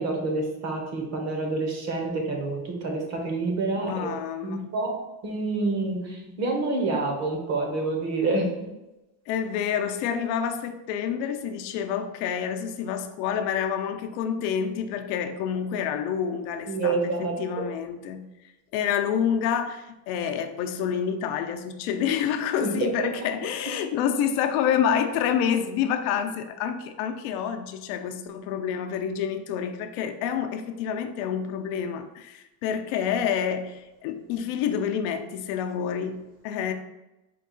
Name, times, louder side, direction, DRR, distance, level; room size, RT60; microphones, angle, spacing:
voice 1, 0.0-4.2 4.4-5.0 5.2-8.6 16.7-17.6 22.6-23.1, right 3 dB, 35° right, 1 dB, 0.8 m, -28 dB
voice 2, 3.8-4.6 9.3-18.2 18.7-36.7, left 8 dB, 80° left, 7 dB, 0.6 m, -28 dB
4.6 x 2.3 x 3.7 m, 0.99 s
cardioid pair, 160°, 45 cm